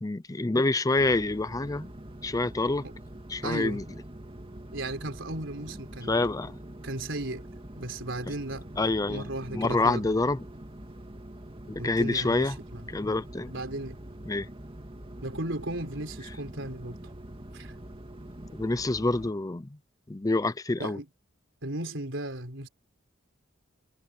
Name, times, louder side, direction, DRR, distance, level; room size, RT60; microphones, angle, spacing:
voice 1, 0.0-1.9 2.2-2.8 3.3-3.8 6.1-6.5 8.8-10.4 11.7-12.6 12.9-13.5 14.3-14.5 18.5-19.7 20.1-21.0, left 2 dB, 20° left, 0.5 m, -27 dB
sound 1, 1.0-19.3, right 1 dB, 25° right, 2.2 m, -44 dB
voice 2, 3.4-3.9 4.7-6.2 6.8-7.4 7.8-8.8 9.1-10.2 11.8-12.9 13.4-14.0 15.2-17.0 17.5-17.7 20.8-21.1 21.6-22.7, right 1 dB, 65° right, 4.7 m, -35 dB
head